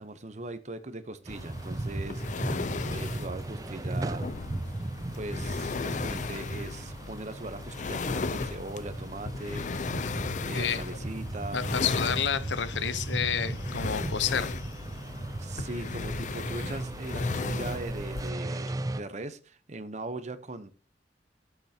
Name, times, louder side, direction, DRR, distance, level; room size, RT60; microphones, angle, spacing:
voice 1, 0.0-4.3 5.2-9.7 10.3-11.6 15.4-20.7, right 2 dB, 40° right, 12 dB, 0.8 m, -40 dB
sound 1, 1.2-19.0, right 2 dB, 20° right, 0.4 m, -37 dB
sound 2, 1.3-18.3, left 4 dB, 45° left, 0.5 m, -36 dB
voice 2, 11.5-14.9, left 7 dB, 90° left, 14 dB, 0.8 m, -30 dB
12.0 x 7.9 x 2.8 m, 0.35 s
head